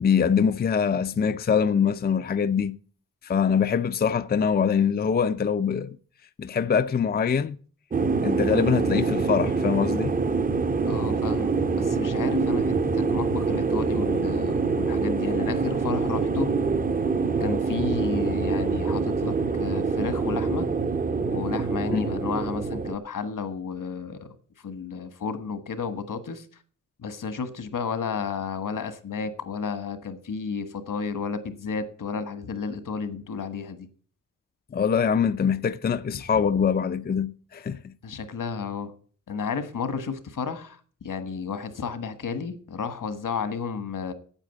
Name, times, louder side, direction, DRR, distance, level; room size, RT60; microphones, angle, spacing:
voice 1, 0.0-2.8 3.2-6.0 6.4-7.6 8.2-10.1 21.9-22.0 34.7-37.9, left 7 dB, 30° left, 0.5 m, -23 dB
sound 1, 7.9-22.9, right 4 dB, 25° right, 0.7 m, -25 dB
voice 2, 10.8-16.5 17.4-20.7 21.2-26.5 27.0-33.9 36.3-36.4 38.0-38.9 39.3-44.1, left 5 dB, 75° left, 1.6 m, -32 dB
9.0 x 8.5 x 8.3 m
wide cardioid pair, 115°, 32 cm